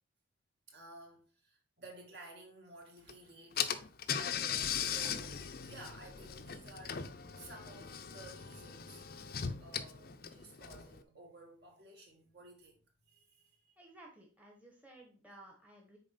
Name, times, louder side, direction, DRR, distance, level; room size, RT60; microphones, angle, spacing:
voice 1, 0.7-3.7 4.1-9.0 9.6-13.7, right 2 dB, 55° right, 2.0 m, -54 dB
Car / Engine, 3.1-3.2 3.6-11.0, left 8 dB, 50° left, 0.5 m, -39 dB
voice 2, 13.8-16.0, right 2 dB, 10° right, 1.1 m, -56 dB
6.6 x 4.4 x 4.2 m
head